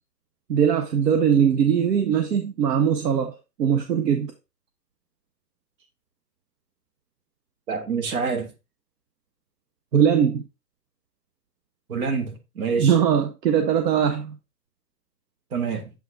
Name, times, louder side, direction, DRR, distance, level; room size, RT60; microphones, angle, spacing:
voice 1, 0.5-3.3 3.6-4.3 9.9-10.4 12.8-14.4, right 8 dB, 70° right, 0.9 m, -20 dB
voice 2, 7.7-8.5 11.9-13.0 15.5-15.9, right 5 dB, 55° right, 1.5 m, -27 dB
7.0 x 6.2 x 2.5 m
hypercardioid pair, 155°, 50 cm